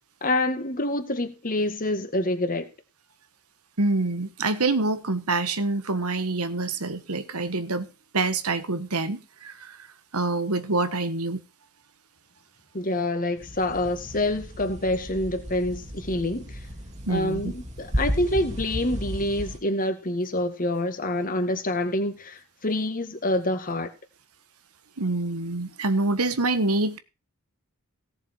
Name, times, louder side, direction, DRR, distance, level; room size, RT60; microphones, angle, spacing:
voice 1, 0.2-2.7 12.7-16.6 17.1-23.9, left 1 dB, 40° left, 2.0 m, -27 dB
voice 2, 3.8-7.9 8.1-9.9 10.1-11.4 17.1-17.5 25.0-27.0, right 2 dB, 85° right, 1.5 m, -26 dB
sound 1, 13.4-19.6, equal, 30° right, 2.2 m, -34 dB
17.0 x 7.2 x 4.7 m
head